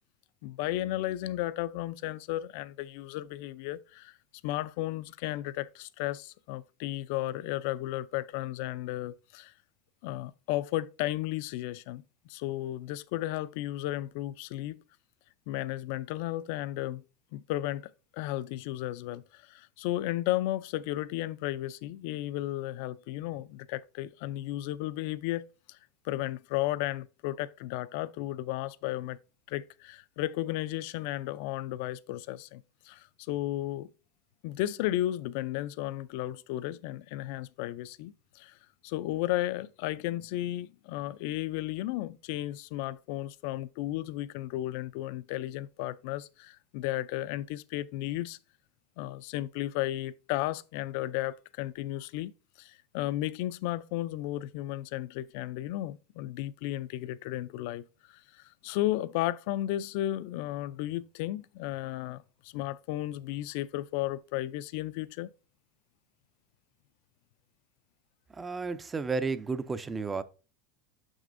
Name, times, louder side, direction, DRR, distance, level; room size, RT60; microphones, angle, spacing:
voice 1, 0.4-4.1 4.4-9.5 10.0-14.8 15.5-17.0 17.3-25.8 26.0-29.2 29.5-33.9 34.4-38.5 38.8-48.4 49.0-52.3 52.6-65.3, left 15 dB, 60° left, 0.3 m, -34 dB
voice 2, 68.3-70.2, right 4 dB, 15° right, 0.4 m, -32 dB
6.7 x 6.1 x 2.5 m
supercardioid pair, 150°, 0 cm